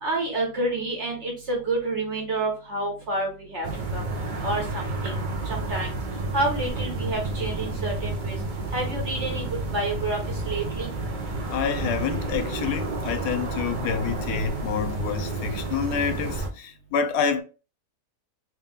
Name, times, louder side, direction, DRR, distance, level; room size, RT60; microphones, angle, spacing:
voice 1, 0.0-4.0 4.4-6.0 6.3-8.4 8.7-9.4 9.7-10.9, right 2 dB, 45° right, 1.4 m, -29 dB
sound 1, 3.6-16.5, right 2 dB, 70° right, 0.4 m, -30 dB
voice 2, 11.5-17.4, left 7 dB, 75° left, 1.1 m, -28 dB
3.1 x 2.9 x 3.5 m
omnidirectional pair, 1.8 m